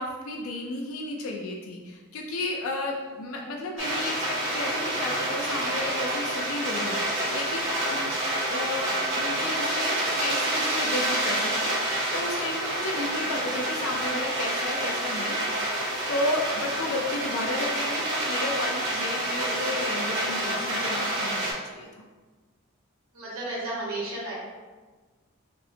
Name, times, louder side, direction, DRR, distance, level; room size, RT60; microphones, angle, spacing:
voice 1, 0.0-8.1 8.5-15.8 16.1-22.0, left 2 dB, 80° left, 1 dB, 0.4 m, -33 dB
sound 1, 3.8-21.5, right 1 dB, 60° right, 1.2 m, -28 dB
voice 2, 23.1-24.3, right 2 dB, 90° right, -6 dB, 1.3 m, -33 dB
5.2 x 2.1 x 2.7 m, 1.3 s
head